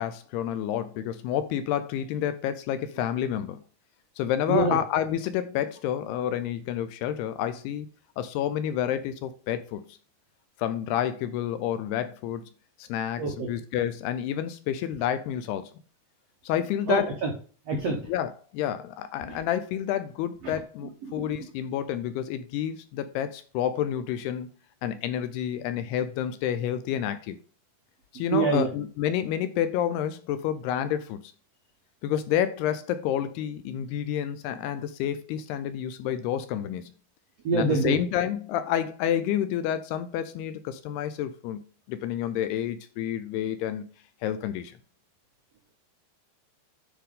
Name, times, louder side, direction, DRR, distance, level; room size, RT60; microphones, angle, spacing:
voice 1, 0.0-3.6 4.2-7.9 8.2-10.0 10.6-12.4 12.8-15.7 16.4-17.1 17.9-24.5 24.8-27.4 28.1-31.2 32.0-36.9 37.5-41.6 41.9-43.8 44.2-44.8, left 10 dB, 80° left, 2.5 m, -29 dB
voice 2, 13.2-13.5 16.9-17.3 17.7-18.0 20.4-20.5 21.0-21.4 28.3-28.7 37.4-37.9, right 4 dB, 85° right, 1.4 m, -25 dB
10.0 x 4.8 x 3.7 m
omnidirectional pair, 5.0 m